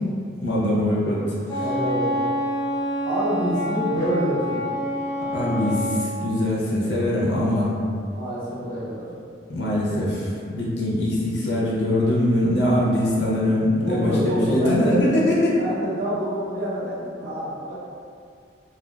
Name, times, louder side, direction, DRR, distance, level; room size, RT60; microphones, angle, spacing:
voice 1, 0.4-1.6 5.3-7.7 9.5-15.6, left 1 dB, 65° left, -6 dB, 0.6 m, -22 dB
Wind instrument woodwind instrument, 1.5-6.1, equal, 20° left, 0.7 m, -27 dB
voice 2, 1.6-2.2 3.0-4.9 8.1-9.0 13.8-15.0 15.6-17.8, equal, 55° right, -13 dB, 1.0 m, -27 dB
2.5 x 2.2 x 2.2 m, 2.3 s
head